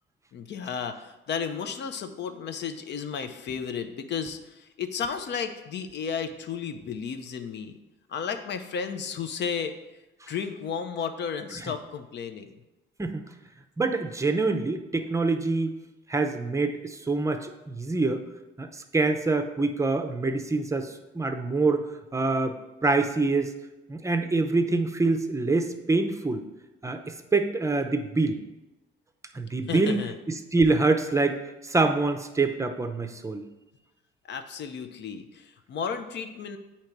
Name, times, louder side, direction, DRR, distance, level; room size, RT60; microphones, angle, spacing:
voice 1, 0.3-7.8 8.1-9.7 10.3-12.5 29.7-30.1 34.3-36.6, left 6 dB, 60° left, 9 dB, 0.6 m, -33 dB
voice 2, 13.8-15.8 16.1-18.2 18.6-23.5 23.9-26.4 26.8-28.4 29.3-33.4, right 3 dB, 15° right, 7 dB, 0.6 m, -26 dB
8.4 x 2.9 x 4.5 m, 1.0 s
cardioid pair, 90°, 20 cm